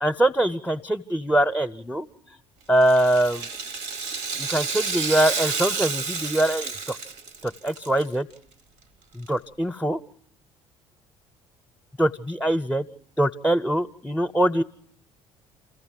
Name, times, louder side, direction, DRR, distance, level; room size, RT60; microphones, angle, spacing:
voice 1, 0.0-2.1 2.7-3.5 4.4-7.0 7.4-8.3 9.1-10.0 12.0-12.8 13.2-14.6, right 1 dB, 5° left, 7 dB, 0.8 m, -23 dB
Rattle (instrument), 2.8-8.0 8.3-8.4 9.3-9.4, right 5 dB, 75° right, 1.2 m, -30 dB
28.0 x 15.0 x 7.6 m, 0.66 s
hypercardioid pair, 55°, 15 cm